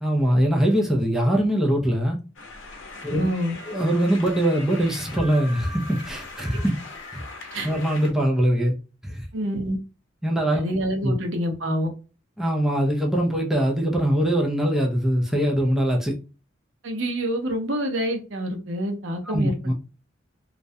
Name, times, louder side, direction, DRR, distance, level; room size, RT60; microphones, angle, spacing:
voice 1, 0.0-2.2 3.0-3.3 3.7-6.7 7.1-7.2 7.6-8.7 9.0-9.2 10.2-10.6 11.0-11.1 12.4-16.1 19.3-19.7, equal, ahead, 0.4 m, -22 dB
sound 1, 2.4-8.1, left 3 dB, 85° left, 0.6 m, -40 dB
voice 2, 3.1-3.5 7.5-7.7 9.3-9.8 10.5-11.9 16.8-19.7, equal, 75° right, 0.6 m, -27 dB
2.3 x 2.1 x 2.6 m
head